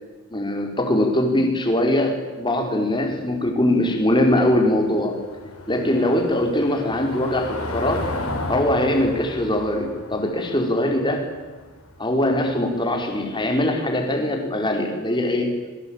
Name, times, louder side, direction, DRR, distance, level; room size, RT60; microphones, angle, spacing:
voice 1, 0.3-5.2 5.7-8.0 8.5-11.3 12.0-15.5, left 1 dB, 20° left, 4 dB, 5.0 m, -22 dB
Car passing by / Engine, 2.9-13.5, left 1 dB, 85° left, 6.5 m, -35 dB
26.5 x 23.5 x 9.1 m, 1.3 s
head